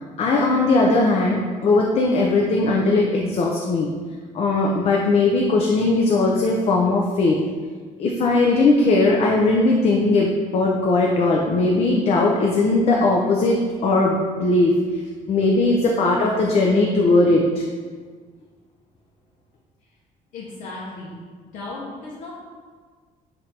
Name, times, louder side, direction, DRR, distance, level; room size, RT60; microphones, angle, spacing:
voice 1, 0.2-3.9 4.3-7.4 8.0-14.7 15.3-17.6, left 2 dB, 45° left, -1 dB, 0.4 m, -19 dB
voice 2, 20.3-21.2 21.5-22.3, left 2 dB, 70° left, -6 dB, 0.8 m, -35 dB
6.2 x 2.6 x 2.8 m, 1.6 s
cardioid pair, 135°, 14 cm